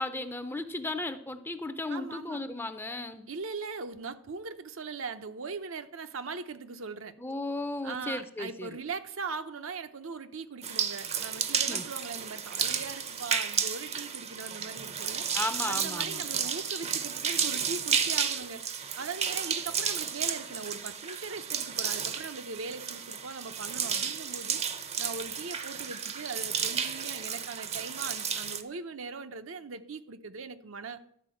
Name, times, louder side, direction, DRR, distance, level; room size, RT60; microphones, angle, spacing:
voice 1, 0.0-3.3 7.2-8.7 11.7-11.8 15.3-16.2, left 2 dB, 10° left, 9 dB, 0.6 m, -35 dB
voice 2, 1.9-2.4 3.3-7.1 7.8-15.2 15.6-18.6 19.0-24.6 25.0-31.0, right 4 dB, 70° right, 9 dB, 0.7 m, -40 dB
sound 1, 10.6-28.6, right 7 dB, 30° right, 0.6 m, -32 dB
12.0 x 4.6 x 7.7 m, 0.69 s
head